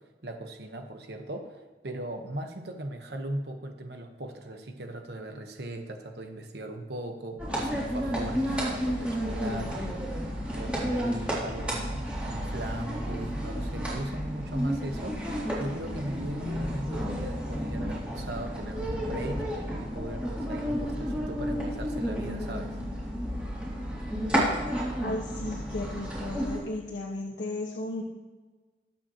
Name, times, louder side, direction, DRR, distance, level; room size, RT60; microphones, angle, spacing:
voice 1, 0.2-10.2 10.5-22.8, right 1 dB, 70° right, 4 dB, 1.1 m, -38 dB
sound 1, 7.4-26.6, equal, 5° right, 2.7 m, -31 dB
voice 2, 25.0-28.0, left 2 dB, 85° left, -4 dB, 1.4 m, -35 dB
20.5 x 7.4 x 3.0 m, 1.3 s
head